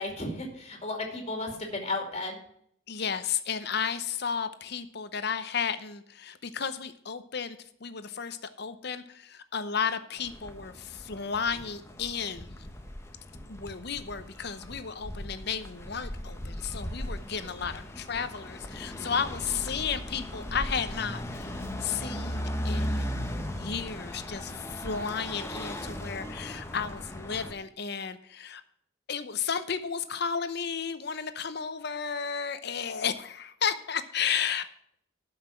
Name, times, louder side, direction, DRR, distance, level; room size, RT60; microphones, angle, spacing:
voice 1, 0.0-2.4, left 2 dB, 30° left, 2 dB, 2.5 m, -34 dB
voice 2, 2.9-12.5 13.5-23.1 23.4-28.6 29.1-34.7, left 6 dB, 55° left, 12 dB, 0.8 m, -33 dB
sound 1, 10.2-27.5, equal, 15° left, 0.9 m, -37 dB
12.0 x 5.9 x 5.7 m, 0.69 s
head